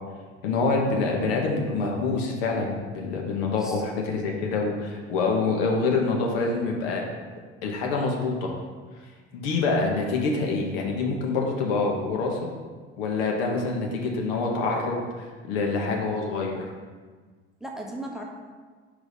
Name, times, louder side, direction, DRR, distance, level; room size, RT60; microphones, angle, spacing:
voice 1, 0.4-7.0 7.6-8.5 9.3-12.4 13.0-16.6, left 3 dB, 60° left, 0 dB, 1.0 m, -26 dB
voice 2, 3.4-3.9 17.6-18.2, right 1 dB, ahead, 0 dB, 0.8 m, -37 dB
5.0 x 3.7 x 5.1 m, 1.5 s
figure-of-eight pair, 55°, 33 cm